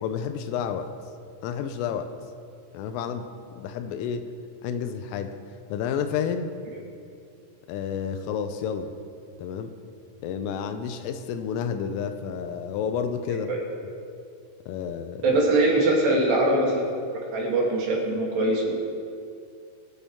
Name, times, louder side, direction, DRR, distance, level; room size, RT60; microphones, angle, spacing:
voice 1, 0.0-0.9 1.4-2.1 2.7-3.3 3.6-4.3 4.6-5.4 5.7-6.5 7.7-8.9 9.4-9.7 10.2-13.5 14.7-15.3, left 7 dB, 85° left, 8 dB, 3.2 m, -30 dB
voice 2, 15.2-16.9 17.1-18.7, right 2 dB, 60° right, -2 dB, 3.8 m, -22 dB
24.0 x 8.5 x 3.6 m, 2.4 s
omnidirectional pair, 5.9 m